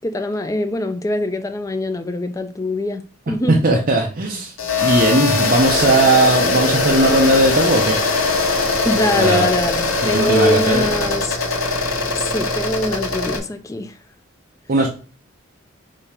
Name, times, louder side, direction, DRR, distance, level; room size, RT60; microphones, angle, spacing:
voice 1, 0.0-3.6 8.8-11.4 12.2-13.9, left 1 dB, 15° left, 0.3 m, -23 dB
voice 2, 3.5-8.0 9.2-9.5 10.0-10.9 14.7-14.9, right 2 dB, 45° right, 0.6 m, -17 dB
sound 1, 4.6-13.4, left 3 dB, 85° left, 1.1 m, -20 dB
5.1 x 2.4 x 4.2 m
head